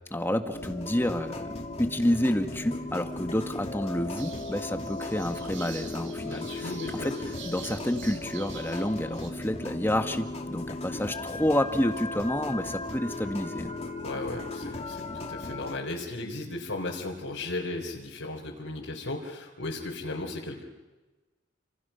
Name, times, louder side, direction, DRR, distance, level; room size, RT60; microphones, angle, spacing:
voice 1, 0.1-7.2 7.4-13.8, left 1 dB, 10° left, 6 dB, 1.6 m, -29 dB
sound 1, 0.5-15.8, left 2 dB, 35° left, 2.7 m, -37 dB
sound 2, 4.2-9.3, right 5 dB, 70° right, 4.1 m, -46 dB
voice 2, 6.3-7.2 14.0-20.6, left 2 dB, 75° left, -2 dB, 3.9 m, -36 dB
29.5 x 27.5 x 5.8 m, 1.2 s
head